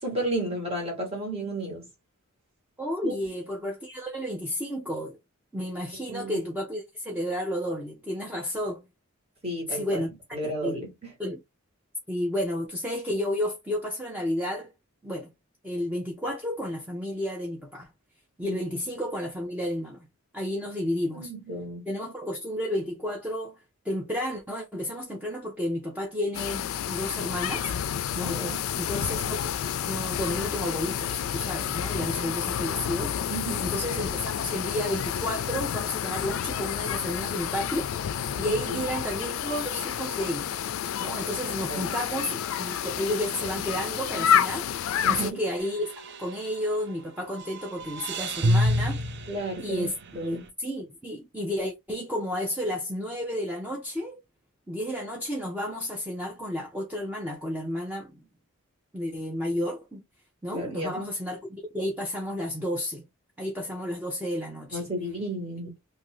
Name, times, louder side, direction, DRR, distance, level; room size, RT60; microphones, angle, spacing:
voice 1, 0.0-1.9 3.0-3.1 6.1-6.4 9.4-10.0 10.3-11.1 18.4-18.6 21.1-21.8 28.1-28.6 31.9-32.0 33.3-33.7 38.7-38.8 41.7-41.9 45.0-45.4 49.3-49.9 50.1-50.4 60.5-61.0 64.7-65.7, right 1 dB, 30° right, 1.5 m, -33 dB
voice 2, 2.8-5.2 5.5-8.8 9.7-10.1 10.4-10.8 11.2-11.4 12.1-14.7 15.0-15.3 15.6-17.9 18.4-20.1 20.3-21.3 21.9-23.6 23.8-27.7 28.2-33.1 33.6-37.9 38.3-40.6 41.0-44.7 45.1-45.9 46.2-49.0 49.6-49.9 50.2-54.2 54.7-58.3 58.9-60.0 60.4-63.0 63.4-64.9, left 1 dB, 5° right, 0.5 m, -32 dB
sound 1, 26.3-45.3, left 9 dB, 70° left, 0.3 m, -29 dB
sound 2, 45.5-46.9 47.3-50.3, equal, 55° right, 0.6 m, -29 dB
2.7 x 2.6 x 3.1 m
head